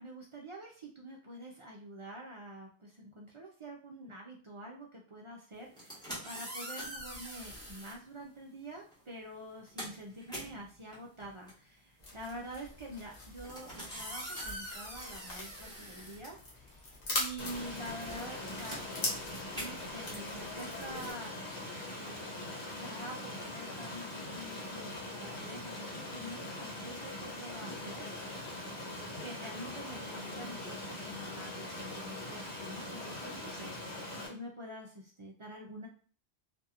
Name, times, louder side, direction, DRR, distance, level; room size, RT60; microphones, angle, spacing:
voice 1, 0.0-18.9 19.5-21.5 21.9-22.2 22.8-28.4 29.2-35.9, right 1 dB, 45° right, -2 dB, 0.4 m, -47 dB
sound 1, 5.6-8.0 8.9-9.1 9.4-16.9 17.2-21.9, equal, 5° left, 1.1 m, -45 dB
sound 2, 12.0-21.1, left 2 dB, 45° left, 0.8 m, -42 dB
Stream, 17.4-34.3, left 1 dB, 85° left, 1.2 m, -42 dB
2.8 x 2.6 x 2.4 m, 0.40 s
omnidirectional pair, 1.1 m